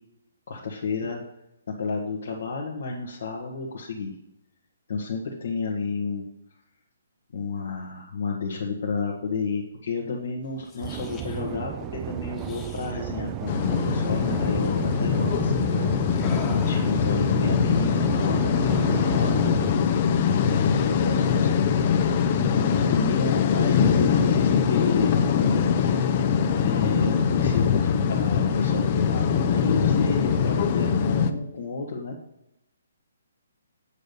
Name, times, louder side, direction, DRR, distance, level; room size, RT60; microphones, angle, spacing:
voice 1, 0.5-1.2 1.7-4.1 4.9-6.3 7.3-19.3 20.3-21.7 22.5-26.0 26.6-32.2, left 4 dB, 60° left, -1 dB, 1.5 m, -31 dB
sound 1, 10.6-11.4 12.3-12.9 13.6-13.8 14.1-14.3 14.6-14.8 16.2-17.1, left 3 dB, 20° left, 1.4 m, -39 dB
sound 2, 10.8-19.7, right 13 dB, 25° right, 0.4 m, -33 dB
sound 3, 13.5-31.3, left 7 dB, 40° left, 0.8 m, -22 dB
8.5 x 5.2 x 6.7 m, 0.90 s
figure-of-eight pair, 135°, 0 cm